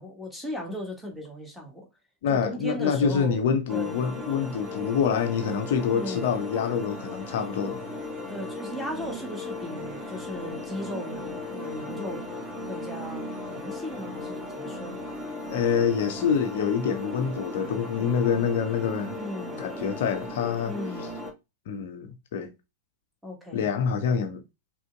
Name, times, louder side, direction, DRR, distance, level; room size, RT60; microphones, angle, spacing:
voice 1, 0.0-1.9 2.3-4.0 5.9-6.3 8.3-12.2 12.6-15.0 19.1-19.6 20.7-21.1 23.2-23.7, equal, ahead, 1.7 m, -37 dB
voice 2, 2.2-7.8 15.5-19.2 19.6-20.7 21.7-22.5 23.5-24.4, left 6 dB, 55° left, 0.6 m, -26 dB
sound 1, 3.7-21.3, left 2 dB, 20° right, 2.1 m, -37 dB
5.0 x 3.4 x 2.4 m
figure-of-eight pair, 90°, 0 cm